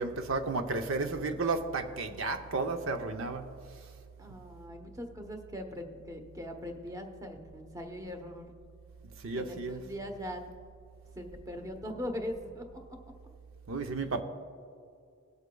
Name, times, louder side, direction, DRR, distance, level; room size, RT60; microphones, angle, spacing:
voice 1, 0.0-3.5 9.2-9.8 13.7-14.2, right 3 dB, 80° right, 0.7 m, -32 dB
voice 2, 4.2-8.5 9.3-10.4 11.2-13.0, left 1 dB, 15° right, 0.9 m, -40 dB
18.5 x 8.0 x 2.3 m
head